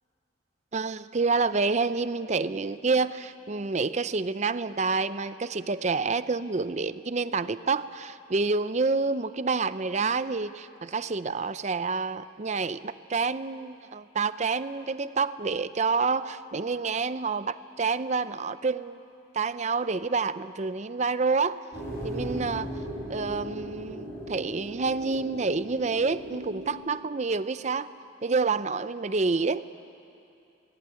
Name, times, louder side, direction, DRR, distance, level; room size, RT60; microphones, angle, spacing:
voice 1, 0.7-19.0 19.3-21.6 22.0-22.7 23.1-27.9 28.2-29.6, right 4 dB, 40° right, 14 dB, 0.6 m, -28 dB
sound 1, 21.7-26.7, right 1 dB, 15° left, 4.7 m, -37 dB
26.0 x 18.5 x 9.0 m, 2.7 s
head